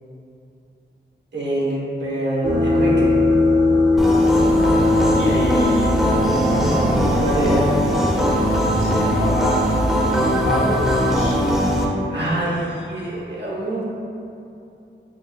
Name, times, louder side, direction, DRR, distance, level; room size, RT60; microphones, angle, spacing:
voice 1, 1.3-3.2 6.6-6.9 7.2-7.7 12.1-13.8, right 1 dB, 65° right, -6 dB, 0.9 m, -25 dB
sound 1, 2.4-8.7, left 2 dB, 45° right, 0.6 m, -20 dB
sound 2, 4.0-11.9, equal, ahead, 0.5 m, -20 dB
voice 2, 4.5-6.0 6.5-6.8 7.8-8.2 8.5-9.6 10.4-11.4, left 1 dB, 90° left, -4 dB, 0.4 m, -27 dB
5.2 x 2.4 x 2.3 m, 2.7 s
wide cardioid pair, 90°, 20 cm